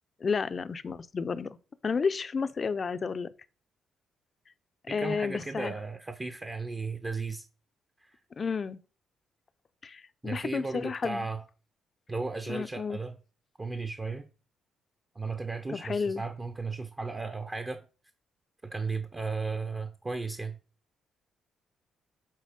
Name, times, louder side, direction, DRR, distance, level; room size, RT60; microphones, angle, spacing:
voice 1, 0.2-1.6 1.8-3.3 4.9-5.8 8.4-8.8 9.8-11.3 12.5-13.0 15.7-16.3, left 5 dB, 40° left, 0.6 m, -31 dB
voice 2, 4.9-7.5 8.0-8.2 10.2-11.4 12.1-13.1 13.6-14.3 15.1-17.8 18.6-20.5, right 4 dB, 25° right, 0.8 m, -35 dB
7.6 x 4.0 x 5.1 m
cardioid pair, 90°, 0 cm